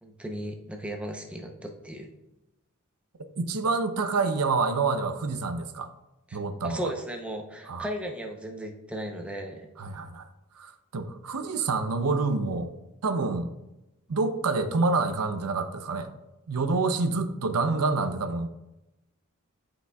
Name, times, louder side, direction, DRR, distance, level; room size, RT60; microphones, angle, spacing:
voice 1, 0.0-2.1 6.3-9.7, equal, 5° right, 2 dB, 0.7 m, -36 dB
voice 2, 3.4-5.9 6.3-6.9 7.7-7.9 9.8-10.3 10.6-12.7 13.0-13.5 14.1-16.1 16.5-18.5, right 3 dB, 90° right, 9 dB, 0.6 m, -27 dB
11.5 x 5.0 x 2.3 m, 0.95 s
head